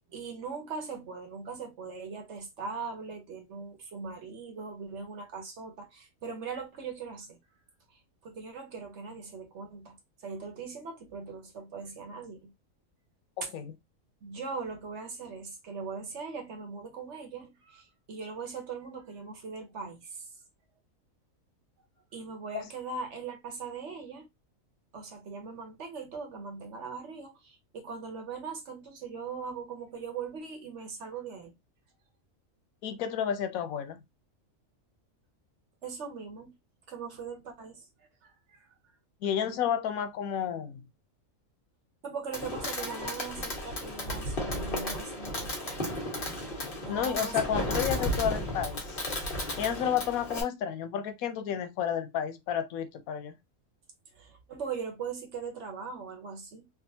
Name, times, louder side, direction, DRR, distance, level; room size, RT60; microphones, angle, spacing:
voice 1, 0.1-7.4 8.2-10.0 10.2-12.5 13.4-13.5 14.2-20.3 22.1-24.3 24.9-31.5 35.8-36.6 36.9-37.9 38.2-38.7 42.0-46.0 46.8-47.4 54.1-56.7, right 5 dB, 60° right, 1.2 m, -40 dB
voice 2, 13.4-13.7 22.5-22.7 32.8-34.0 39.2-40.8 46.9-49.0 49.6-53.3, left 9 dB, 90° left, 1.1 m, -31 dB
Fireworks, 42.3-50.4, left 1 dB, 40° left, 1.3 m, -34 dB
3.5 x 2.4 x 2.7 m
omnidirectional pair, 1.4 m